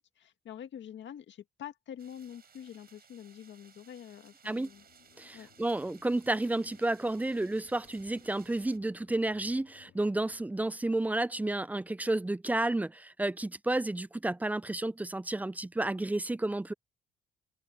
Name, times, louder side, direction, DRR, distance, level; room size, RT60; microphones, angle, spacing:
voice 1, 0.0-4.8 5.3-5.5, left 9 dB, 65° left, 1.9 m, -46 dB
sound 1, 2.0-8.8, right 7 dB, 50° right, 5.3 m, -60 dB
sound 2, 4.5-10.4, left 14 dB, 90° left, 3.4 m, -63 dB
voice 2, 5.2-16.7, right 2 dB, 10° right, 0.4 m, -31 dB
cardioid pair, 90°, 20 cm